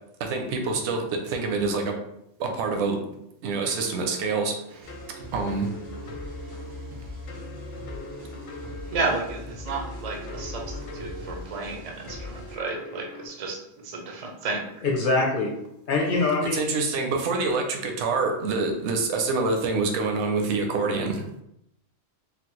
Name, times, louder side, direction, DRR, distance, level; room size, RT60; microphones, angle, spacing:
voice 1, 0.2-2.0 2.4-3.0 3.4-4.9 5.3-5.7 16.5-21.2, right 3 dB, 70° right, 4 dB, 0.8 m, -26 dB
sound 1, 3.7-13.3, equal, 75° left, 0.9 m, -42 dB
sound 2, 4.8-12.6, left 2 dB, 90° right, 1.6 m, -40 dB
voice 2, 8.9-13.6 13.8-14.7, right 3 dB, 50° right, 1 dB, 0.4 m, -32 dB
voice 3, 14.8-15.5 15.9-16.7, left 3 dB, 50° left, -1 dB, 0.8 m, -23 dB
3.7 x 2.0 x 3.0 m, 0.79 s
omnidirectional pair, 1.3 m